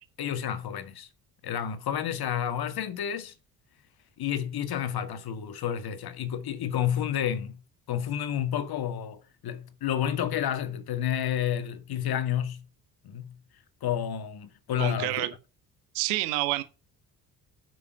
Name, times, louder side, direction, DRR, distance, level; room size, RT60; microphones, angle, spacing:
voice 1, 0.2-1.1 1.4-3.3 4.2-7.6 7.9-12.7 13.0-13.4 13.8-15.3, left 10 dB, 50° left, 1.9 m, -30 dB
voice 2, 14.8-15.3 15.9-16.6, right 17 dB, 70° right, 1.5 m, -28 dB
9.4 x 6.3 x 5.8 m
figure-of-eight pair, 50°, 49 cm